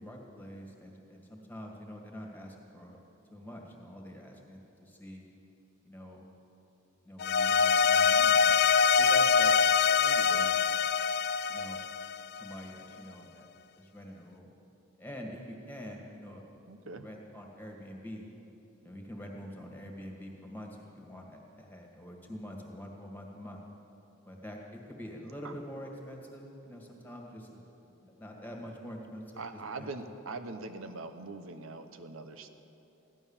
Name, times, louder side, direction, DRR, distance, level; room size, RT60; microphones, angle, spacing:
voice 1, 0.0-3.0 3.3-5.3 5.8-6.3 7.0-9.7 10.3-10.6 11.5-11.8 12.4-13.5 13.8-14.5 15.0-16.4 16.9-18.3 18.8-23.6 24.3-29.4 29.8-30.0, equal, 10° left, 0 dB, 1.9 m, -45 dB
sound 1, 7.2-12.5, left 6 dB, 50° left, 0.3 m, -24 dB
voice 2, 10.0-10.5 16.7-17.1 25.4-25.5 29.4-32.5, right 3 dB, 85° right, 8 dB, 1.0 m, -42 dB
15.5 x 12.0 x 7.2 m, 2.8 s
head